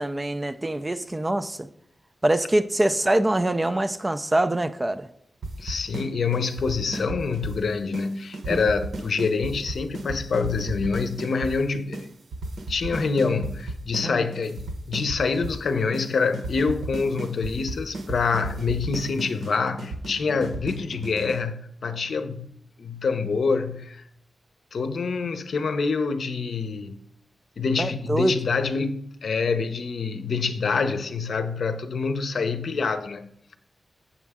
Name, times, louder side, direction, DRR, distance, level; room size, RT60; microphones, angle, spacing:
voice 1, 0.0-1.7 2.2-5.1 8.5-8.6 14.0-14.2 27.8-28.3, right 1 dB, 20° right, 0.4 m, -24 dB
sound 1, 5.4-6.1 6.3-7.6 7.9-8.1 8.3-11.5 11.9-12.0 12.3-14.1 14.3-15.6 15.9-16.1 16.3-21.4, right 2 dB, 85° right, 1.0 m, -34 dB
voice 2, 5.6-12.1 12.7-22.5 22.8-24.0 24.7-27.0 27.6-33.6, left 4 dB, 65° left, 0.7 m, -26 dB
8.5 x 7.2 x 3.6 m
wide cardioid pair, 120°, 0 cm